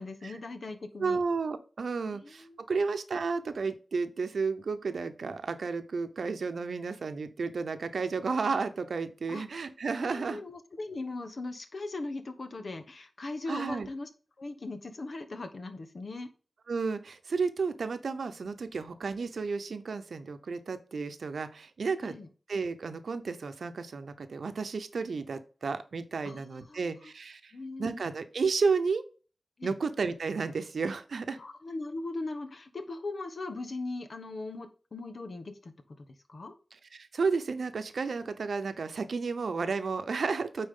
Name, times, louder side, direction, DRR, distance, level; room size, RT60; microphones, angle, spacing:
voice 1, 0.0-1.2 2.1-2.6 9.3-9.4 10.0-14.1 14.4-16.3 22.0-22.3 26.2-27.1 27.5-28.0 29.6-29.7 31.4-35.7 36.3-36.5, left 2 dB, 65° left, 8 dB, 1.2 m, -39 dB
voice 2, 1.0-10.4 13.5-13.9 16.7-22.2 22.5-27.5 27.8-29.0 29.6-31.4 36.9-40.7, right 4 dB, 80° right, 10 dB, 0.8 m, -32 dB
8.9 x 4.2 x 3.8 m, 0.37 s
cardioid pair, 55°, 0 cm